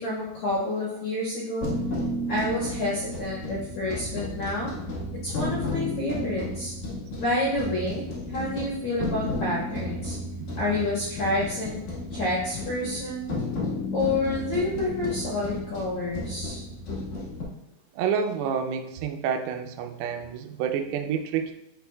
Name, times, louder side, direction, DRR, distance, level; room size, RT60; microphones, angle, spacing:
voice 1, 0.0-1.8 2.3-4.7 5.2-6.7 7.1-8.0 8.3-10.2 10.5-11.8 12.1-13.3 13.9-16.6, left 2 dB, 90° left, -7 dB, 1.5 m, -29 dB
sound 1, 1.6-17.4, left 1 dB, 65° left, 2.1 m, -33 dB
voice 2, 17.9-21.6, right 7 dB, 85° right, 6 dB, 3.2 m, -28 dB
11.0 x 4.4 x 2.3 m, 0.85 s
omnidirectional pair, 5.8 m